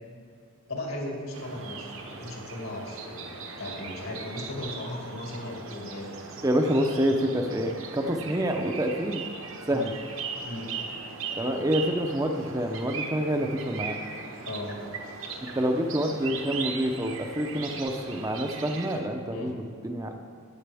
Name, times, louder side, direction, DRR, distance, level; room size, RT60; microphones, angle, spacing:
voice 1, 0.7-6.1 9.7-9.9 10.4-10.7 14.5-14.8 19.3-19.5, left 1 dB, 75° left, -1 dB, 2.3 m, -37 dB
sound 1, 1.3-19.0, right 5 dB, 65° right, 1.2 m, -39 dB
voice 2, 6.4-9.2 9.7-9.9 11.4-14.0 15.5-20.1, equal, 15° right, 4 dB, 0.6 m, -27 dB
14.5 x 9.5 x 3.5 m, 2.4 s
head